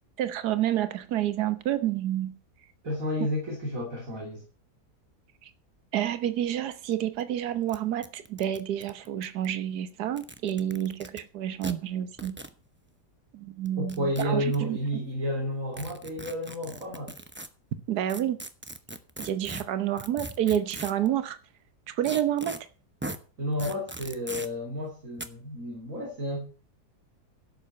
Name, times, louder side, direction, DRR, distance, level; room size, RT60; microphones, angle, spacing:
voice 1, 0.2-2.4 5.4-5.5 5.9-12.4 13.3-14.8 17.9-18.4 19.2-21.4 21.9-22.6, right 11 dB, 75° right, 1.5 m, -29 dB
voice 2, 2.8-4.4 13.8-17.1 23.4-26.4, equal, 55° right, 3.4 m, -31 dB
sound 1, 6.9-7.0 7.2-7.3 7.7-7.8 8.0-9.5 10.1-11.2 11.6-11.7 12.2-12.5 13.6-14.6 15.7-17.5 18.1-21.1 22.0-22.6 23.0-23.2 23.6-24.5 25.2-25.3, right 1 dB, 10° right, 0.5 m, -39 dB
11.5 x 8.2 x 6.7 m
omnidirectional pair, 1.7 m